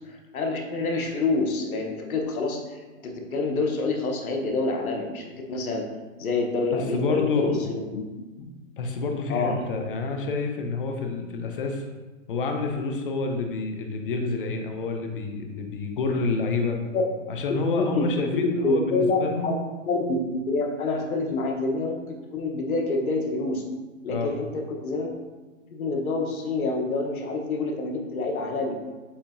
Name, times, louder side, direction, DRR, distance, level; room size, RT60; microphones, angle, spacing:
voice 1, 0.1-5.9 6.2-8.0 9.3-9.6 16.9-17.0 17.8-19.6 19.9-22.0 22.3-23.6 24.0-25.1 25.7-28.8, left 3 dB, 85° left, 2 dB, 0.9 m, -27 dB
voice 2, 6.7-7.7 8.4-8.5 8.8-11.8 12.3-16.8 17.3-19.5 24.1-24.3, left 3 dB, 40° left, 4 dB, 0.6 m, -28 dB
7.0 x 2.7 x 2.5 m, 1.2 s
hypercardioid pair, 150°, 41 cm